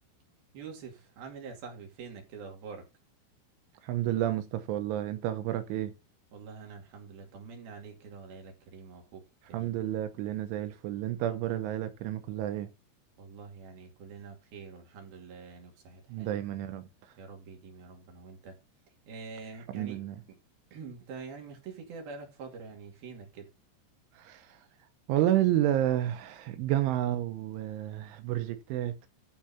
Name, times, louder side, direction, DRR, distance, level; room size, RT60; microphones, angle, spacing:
voice 1, 0.5-2.9 6.3-9.8 13.2-16.4 17.2-18.6 19.1-20.0 20.7-23.5, right 5 dB, 55° right, 4.0 m, -46 dB
voice 2, 3.8-5.9 9.5-12.7 16.1-16.9 19.7-20.2 24.1-24.6 25.1-29.1, right 12 dB, 85° right, 3.4 m, -30 dB
12.0 x 4.7 x 5.7 m
omnidirectional pair, 5.4 m